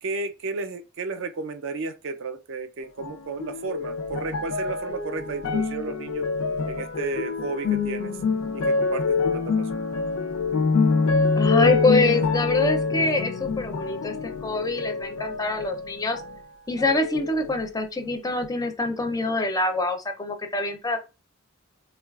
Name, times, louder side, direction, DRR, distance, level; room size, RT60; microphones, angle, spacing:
voice 1, 0.0-6.3 6.6-8.2 8.5-9.7, right 3 dB, 65° right, 0.4 m, -33 dB
sound 1, 3.0-16.5 16.8-17.7 18.4-18.5, left 4 dB, 70° left, 0.5 m, -26 dB
voice 2, 11.4-16.2 16.7-21.0, left 2 dB, 15° left, 0.4 m, -25 dB
3.7 x 2.2 x 2.3 m
head